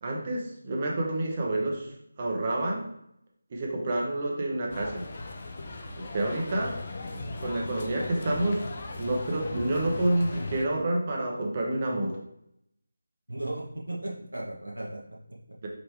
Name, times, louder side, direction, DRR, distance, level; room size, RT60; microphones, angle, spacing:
voice 1, 0.0-1.9 2.2-2.9 3.5-5.0 5.9-6.8 7.4-8.6 9.0-12.2 15.6-15.7, right 1 dB, 30° right, -1 dB, 0.9 m, -28 dB
sound 1, 4.7-10.6, left 2 dB, 35° left, 0.6 m, -38 dB
voice 2, 13.3-15.6, right 1 dB, 70° right, -3 dB, 0.9 m, -36 dB
5.0 x 3.2 x 3.2 m, 0.77 s
figure-of-eight pair, 160°, 0 cm